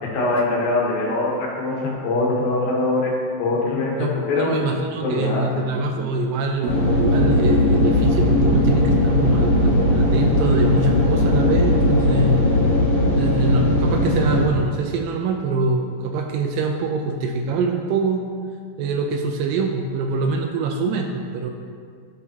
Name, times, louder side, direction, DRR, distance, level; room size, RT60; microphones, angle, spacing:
voice 1, 0.0-4.7 5.0-5.7 6.0-6.1, left 2 dB, 75° left, -3 dB, 3.0 m, -23 dB
voice 2, 4.0-12.4 13.2-18.2 18.8-21.5, right 3 dB, 80° right, 3 dB, 2.2 m, -24 dB
sound 1, 6.6-14.8, equal, 55° right, 2.9 m, -21 dB
sound 2, 6.7-14.5, left 2 dB, 50° left, 2.6 m, -21 dB
12.5 x 6.4 x 2.9 m, 2.1 s
omnidirectional pair, 4.2 m